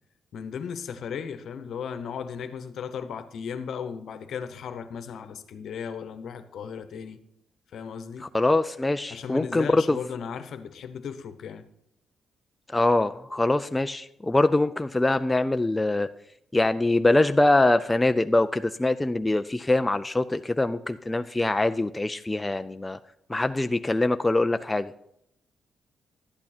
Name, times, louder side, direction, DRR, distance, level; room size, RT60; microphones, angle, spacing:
voice 1, 0.3-7.2 7.7-8.3 9.1-11.6, left 7 dB, 70° left, 1.0 m, -36 dB
voice 2, 8.3-10.0 12.7-16.1 16.5-23.0 23.3-24.9, left 2 dB, 15° left, 0.4 m, -23 dB
12.0 x 8.7 x 4.3 m
cardioid pair, 105°, 0 cm